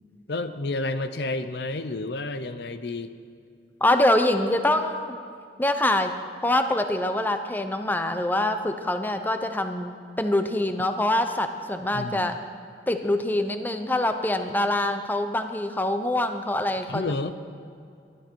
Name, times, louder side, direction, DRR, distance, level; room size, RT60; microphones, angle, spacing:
voice 1, 0.3-3.1 11.9-12.3 16.9-17.4, left 2 dB, 65° left, 11 dB, 0.7 m, -30 dB
voice 2, 3.8-5.2 5.6-6.1 6.4-12.4 12.9-17.0, left 1 dB, 10° left, 7 dB, 0.7 m, -24 dB
22.5 x 12.0 x 4.6 m, 2.4 s
head